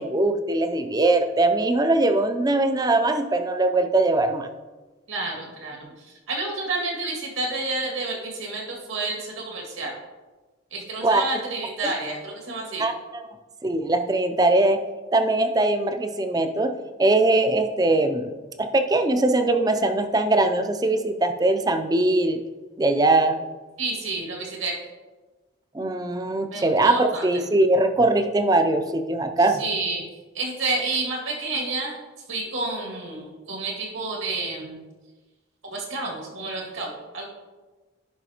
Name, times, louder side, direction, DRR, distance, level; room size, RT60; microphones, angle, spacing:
voice 1, 0.0-4.5 11.0-11.2 11.8-11.9 12.8-13.4 13.6-14.8 15.1-16.7 17.0-18.3 18.6-22.4 22.8-23.4 25.7-29.6, right 2 dB, 20° right, 7 dB, 0.4 m, -21 dB
voice 2, 5.1-5.8 6.0-9.9 10.7-12.9 23.8-24.8 26.5-27.4 29.6-30.1 30.3-32.0 32.3-34.8 35.7-37.3, right 3 dB, 90° right, -2 dB, 2.1 m, -30 dB
11.0 x 5.6 x 2.9 m, 1.2 s
head